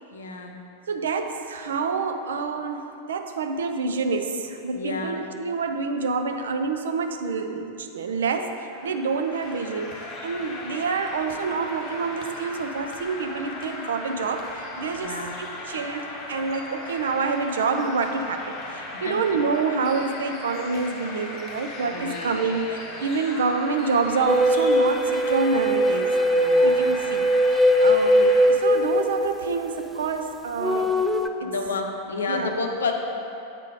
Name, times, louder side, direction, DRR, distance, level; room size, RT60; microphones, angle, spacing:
voice 1, 0.1-0.5 4.7-5.1 14.9-15.3 18.9-19.2 21.9-22.4 26.3-26.8 27.9-28.0 31.4-32.9, left 3 dB, 70° left, 3 dB, 0.6 m, -30 dB
voice 2, 0.9-10.0 10.2-26.2 26.6-30.9 31.4-31.5 32.3-32.5, right 4 dB, 65° right, 6 dB, 0.4 m, -27 dB
sound 1, 8.7-28.5, left 2 dB, 35° left, 0.8 m, -37 dB
sound 2, 24.3-29.8 30.6-31.3, equal, ahead, 0.4 m, -20 dB
8.2 x 3.7 x 4.9 m, 2.8 s
figure-of-eight pair, 90°, 0 cm